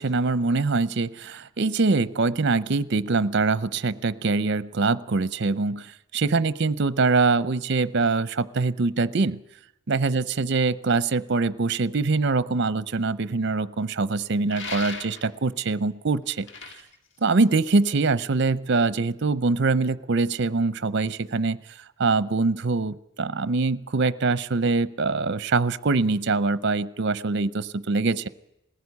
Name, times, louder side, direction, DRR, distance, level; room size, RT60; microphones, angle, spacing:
voice 1, 0.0-9.4 9.9-16.5 17.2-21.6 22.0-28.3, right 3 dB, 60° right, 16 dB, 0.7 m, -24 dB
sound 1, 14.5-15.5 16.3-18.0, left 4 dB, 60° left, 2.0 m, -38 dB
19.5 x 16.0 x 9.6 m, 0.86 s
head